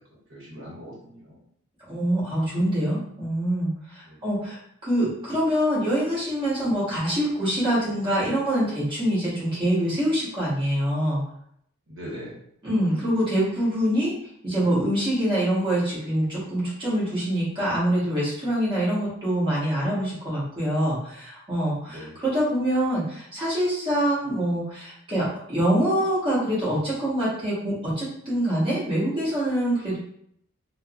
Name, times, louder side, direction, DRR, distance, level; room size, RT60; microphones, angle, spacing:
voice 1, 0.3-1.4 4.1-4.2 11.9-12.3 13.0-13.1 21.9-22.2, equal, 70° right, -5 dB, 0.9 m, -40 dB
voice 2, 1.9-11.2 12.6-14.1 14.4-30.0, right 1 dB, 25° right, -9 dB, 1.2 m, -25 dB
3.3 x 2.0 x 2.4 m, 0.69 s
head